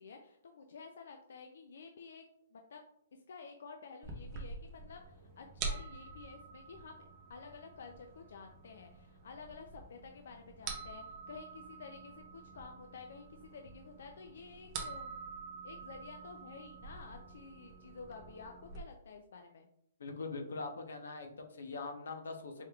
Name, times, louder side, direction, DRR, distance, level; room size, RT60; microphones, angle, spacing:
voice 1, 0.0-2.2 2.5-2.8 3.3-15.3 15.6-19.7, left 5 dB, 55° left, 4 dB, 0.4 m, -51 dB
sound 1, 4.0-18.8, right 4 dB, 15° right, 0.5 m, -47 dB
voice 2, 20.0-22.7, left 3 dB, 75° left, 5 dB, 0.8 m, -42 dB
4.4 x 3.5 x 2.3 m, 0.72 s
hypercardioid pair, 180°, 0 cm